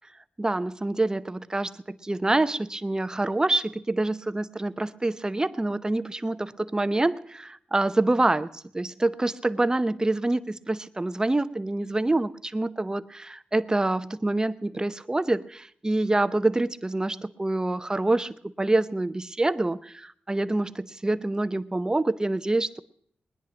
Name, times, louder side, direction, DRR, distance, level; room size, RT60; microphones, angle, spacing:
voice 1, 0.4-22.8, right 2 dB, 20° right, 14 dB, 0.8 m, -26 dB
20.5 x 10.5 x 6.0 m, 0.64 s
cardioid pair, 65°, 4 cm